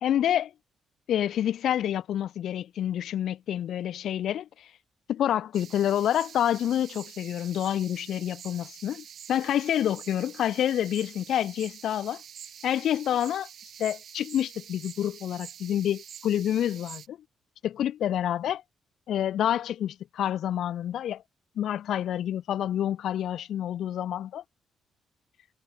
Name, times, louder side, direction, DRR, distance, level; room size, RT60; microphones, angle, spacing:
voice 1, 0.0-0.5 1.1-4.7 5.1-12.2 12.6-13.5 13.8-17.2 17.6-18.6 19.1-21.2 21.6-24.4, left 11 dB, 75° left, 1.7 m, -28 dB
sound 1, 5.5-17.1, right 9 dB, 65° right, 4.0 m, -46 dB
cardioid pair, 95°, 0 cm